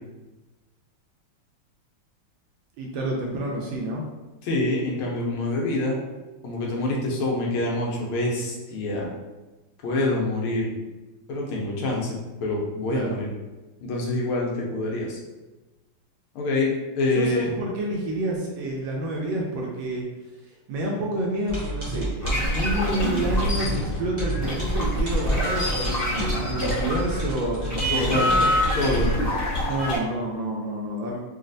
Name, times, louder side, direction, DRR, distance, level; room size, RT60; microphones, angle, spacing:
voice 1, 2.8-4.0 12.9-13.2 17.2-20.0 20.7-28.5 29.6-31.2, right 1 dB, 75° right, -2 dB, 1.2 m, -29 dB
voice 2, 4.4-6.0 6.4-9.1 9.8-10.7 11.3-13.3 13.8-15.2 16.3-17.5 27.9-28.4 28.7-29.1, left 2 dB, 80° left, -2 dB, 1.6 m, -26 dB
sound 1, 21.5-28.8, right 1 dB, 25° right, 0.6 m, -31 dB
sound 2, 22.2-27.3 27.6-30.0, left 1 dB, 25° left, 1.0 m, -25 dB
4.0 x 2.3 x 2.6 m, 1.1 s
omnidirectional pair, 2.4 m